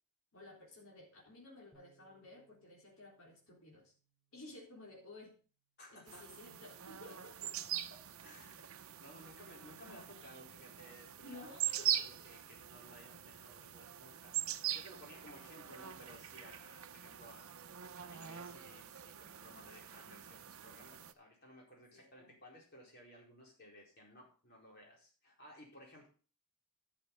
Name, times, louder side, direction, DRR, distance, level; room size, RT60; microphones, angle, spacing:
voice 1, 0.3-3.9 4.3-5.3 5.9-7.5 11.2-11.9 21.9-22.4, left 2 dB, 70° left, -3 dB, 3.8 m, -54 dB
Bass guitar, 1.7-8.0, right 4 dB, 20° right, 5.8 m, -76 dB
voice 2, 5.8-6.3 7.9-8.6 9.0-17.5 18.0-26.1, equal, 45° left, -1 dB, 4.5 m, -58 dB
sound 1, 6.1-21.1, right 11 dB, 70° right, 0.7 m, -43 dB
11.5 x 6.9 x 5.4 m, 0.37 s
head